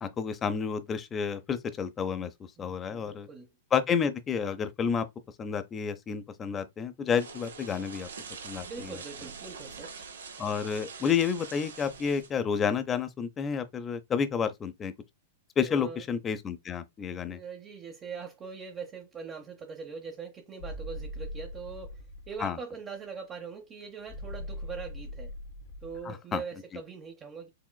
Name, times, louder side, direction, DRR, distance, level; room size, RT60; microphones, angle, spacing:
voice 1, 0.0-2.3 2.6-3.3 3.7-5.1 5.4-8.1 8.4-9.0 10.4-14.9 15.6-17.4 22.4-22.6 26.0-26.4, left 7 dB, 25° left, 0.6 m, -30 dB
voice 2, 2.6-3.5 8.6-10.1 15.6-16.0 17.3-22.0 22.3-25.3 25.8-27.5, right 5 dB, 30° right, 0.7 m, -42 dB
sound 1, 7.2-12.3, right 5 dB, 80° right, 0.7 m, -44 dB
sound 2, 20.6-22.4 24.1-26.0, left 1 dB, 70° left, 0.9 m, -41 dB
4.8 x 2.9 x 2.2 m
hypercardioid pair, 105°, 0 cm